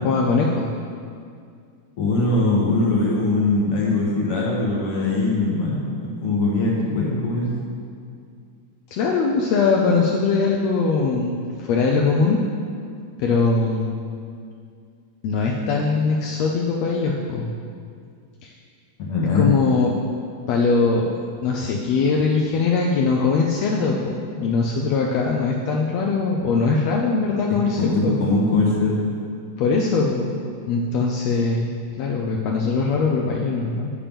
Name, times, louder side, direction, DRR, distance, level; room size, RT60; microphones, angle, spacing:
voice 1, 0.0-0.7 8.9-12.4 13.2-13.9 15.2-17.5 18.4-18.5 19.4-19.9 20.5-28.2 29.6-30.4 30.7-31.7 32.0-33.9, left 4 dB, 80° left, -1 dB, 1.6 m, -21 dB
voice 2, 2.0-7.5 19.0-19.5 27.8-29.1, left 3 dB, 60° left, -3 dB, 1.8 m, -21 dB
8.5 x 7.3 x 3.4 m, 2.2 s
omnidirectional pair, 3.5 m